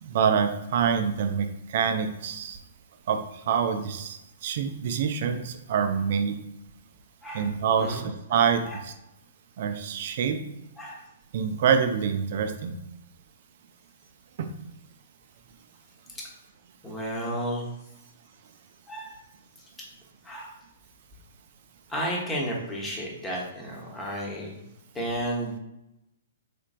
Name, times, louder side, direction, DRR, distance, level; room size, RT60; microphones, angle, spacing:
voice 1, 0.0-2.6 3.1-3.2 3.5-6.4 7.3-8.0 8.3-8.9 9.6-10.4 11.3-12.7 14.4-14.5, right 7 dB, 55° right, 8 dB, 0.4 m, -26 dB
voice 2, 16.8-17.7 18.9-19.2 20.2-20.5 21.9-24.6 24.9-25.6, equal, 10° left, -3 dB, 1.1 m, -32 dB
4.2 x 3.1 x 2.5 m, 0.88 s
figure-of-eight pair, 120°, 0 cm